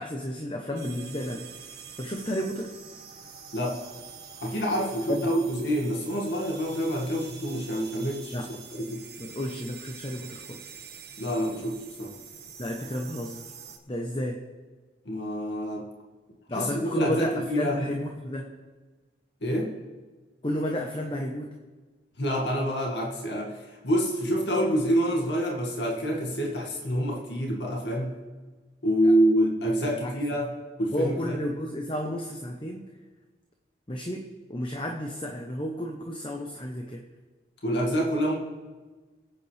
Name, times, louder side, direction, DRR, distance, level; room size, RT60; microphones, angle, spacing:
voice 1, 0.0-1.5 2.0-2.8 5.1-5.3 8.3-8.5 9.2-10.6 12.6-13.4 13.9-14.4 16.5-18.5 20.4-21.5 29.0-29.1 29.9-30.2 30.9-32.8 33.9-37.0, equal, 30° left, 2 dB, 1.0 m, -32 dB
sound 1, 0.8-13.8, right 6 dB, 60° right, 1.6 m, -45 dB
voice 2, 4.4-8.3 8.7-9.0 11.2-12.1 15.1-15.9 16.5-17.8 19.4-19.7 22.2-23.6 23.8-28.1 28.8-30.5 30.8-31.4 37.6-38.4, equal, 75° left, -1 dB, 2.2 m, -27 dB
24.0 x 9.1 x 3.5 m, 1.3 s
head